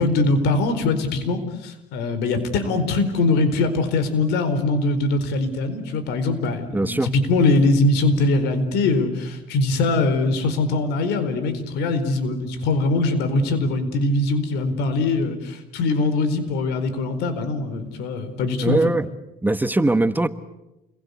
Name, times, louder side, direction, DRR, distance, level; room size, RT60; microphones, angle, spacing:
voice 1, 0.0-18.8, left 2 dB, 90° left, 4.4 m, -22 dB
voice 2, 6.7-7.1 18.6-19.1 19.4-20.3, right 2 dB, 10° right, 1.3 m, -20 dB
29.0 x 22.5 x 8.4 m
cardioid pair, 110°, 17 cm